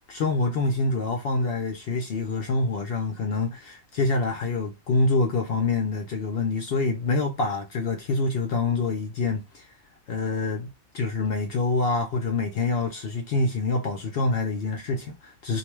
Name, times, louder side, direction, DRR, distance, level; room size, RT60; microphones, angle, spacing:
voice 1, 0.1-9.6 10.1-15.6, left 3 dB, 60° left, 0.6 m, -26 dB
2.5 x 2.1 x 3.1 m
omnidirectional pair, 1.4 m